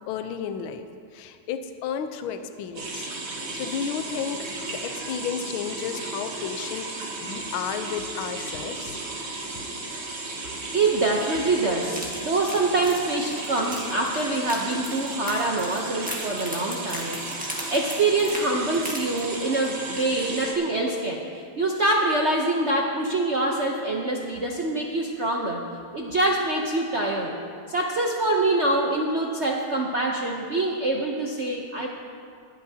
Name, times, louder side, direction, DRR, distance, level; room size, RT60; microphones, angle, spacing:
voice 1, 0.1-0.8 1.1-3.1 3.5-6.9 7.2-9.0, left 7 dB, 75° left, 8 dB, 1.5 m, -32 dB
sound 1, 2.8-20.5, right 2 dB, 80° right, 2.8 m, -35 dB
voice 2, 10.7-17.2 17.7-21.2 21.6-25.6 25.9-27.4 27.7-31.9, right 2 dB, 60° right, -1 dB, 0.7 m, -25 dB
sound 2, 11.9-19.7 20.0-20.2 20.5-20.6, equal, 5° right, 1.4 m, -38 dB
21.0 x 11.5 x 2.8 m, 2.3 s
omnidirectional pair, 2.4 m